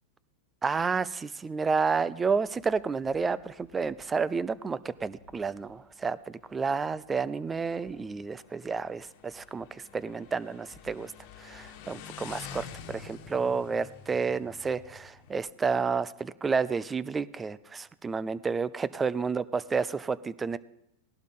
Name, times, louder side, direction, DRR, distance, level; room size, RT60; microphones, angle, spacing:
voice 1, 0.6-11.1 11.4-20.6, right 5 dB, 15° right, 18 dB, 0.5 m, -30 dB
Motorcycle, 2.5-15.4, left 8 dB, 60° left, 1.4 m, -49 dB
18.0 x 11.5 x 3.7 m, 0.81 s
hypercardioid pair, 125°, 0 cm